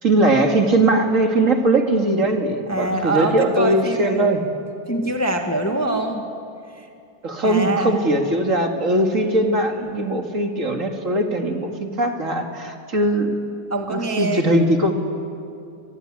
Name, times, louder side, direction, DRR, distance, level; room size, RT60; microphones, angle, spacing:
voice 1, 0.0-4.4 7.2-13.4 13.9-14.9, right 1 dB, 40° right, 3 dB, 2.3 m, -20 dB
voice 2, 2.7-4.3 4.9-6.3 6.7-6.9 7.4-8.0 13.7-14.4, right 2 dB, 10° left, 3 dB, 1.5 m, -24 dB
25.0 x 22.5 x 9.7 m, 2.5 s
omnidirectional pair, 2.1 m